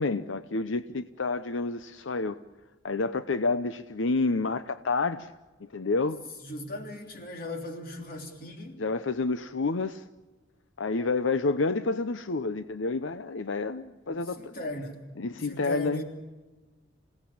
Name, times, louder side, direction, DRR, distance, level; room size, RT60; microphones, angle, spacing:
voice 1, 0.0-2.4 2.8-5.3 5.7-6.2 8.8-10.0 10.8-14.5 15.2-16.0, left 3 dB, 80° left, 12 dB, 0.7 m, -29 dB
voice 2, 6.4-8.8 14.1-15.0 15.4-16.0, left 1 dB, 50° left, 4 dB, 3.3 m, -38 dB
27.0 x 17.5 x 8.7 m, 1.3 s
head